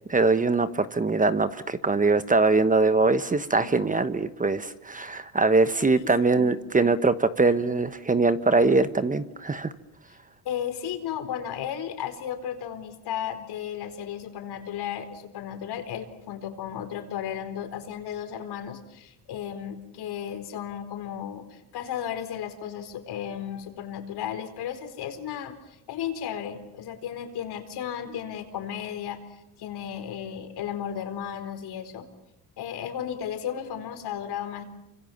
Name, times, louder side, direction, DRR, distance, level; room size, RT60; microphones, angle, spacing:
voice 1, 0.1-9.7, right 3 dB, 20° right, 12 dB, 1.2 m, -22 dB
voice 2, 5.8-6.5 10.4-29.2 29.6-32.0 32.6-34.6, left 9 dB, 70° left, 7 dB, 4.5 m, -34 dB
29.0 x 25.5 x 7.3 m, 0.86 s
cardioid pair, 105°, 41 cm